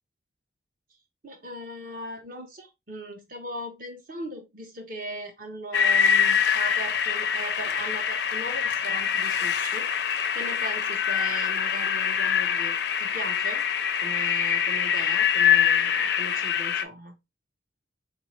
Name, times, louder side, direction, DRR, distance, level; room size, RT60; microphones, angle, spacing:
voice 1, 1.2-13.6 14.0-17.2, right 1 dB, 45° right, 0.9 m, -38 dB
sound 1, 5.7-16.8, left 8 dB, 60° left, 0.4 m, -24 dB
4.0 x 2.5 x 3.1 m
head